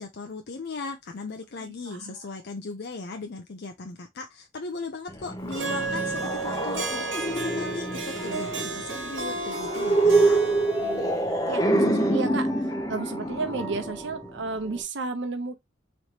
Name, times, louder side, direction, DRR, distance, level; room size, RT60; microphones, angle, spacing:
voice 1, 0.0-10.4, left 3 dB, 55° left, 0.6 m, -37 dB
voice 2, 1.6-2.1 10.8-15.6, right 3 dB, 65° right, 0.8 m, -33 dB
sound 1, 5.1-14.8, right 2 dB, 20° left, 0.8 m, -26 dB
Harp, 5.5-11.3, right 3 dB, 80° right, 1.3 m, -33 dB
4.3 x 3.2 x 2.9 m
head